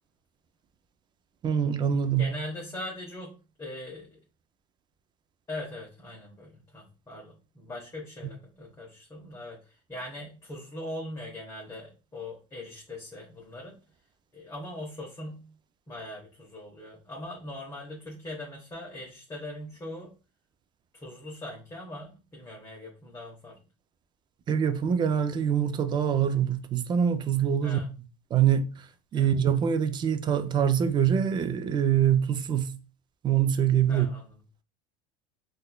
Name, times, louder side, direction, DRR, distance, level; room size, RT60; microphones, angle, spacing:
voice 1, 1.4-2.3 24.5-27.8 28.3-32.8 33.2-34.1, right 8 dB, 25° right, 0.4 m, -24 dB
voice 2, 2.2-4.2 5.5-13.8 14.3-15.4 15.9-20.2 20.9-23.6 27.6-27.9 29.1-29.3 33.9-34.3, left 1 dB, 20° left, 1.0 m, -41 dB
4.1 x 2.5 x 2.3 m
supercardioid pair, 115°, 17 cm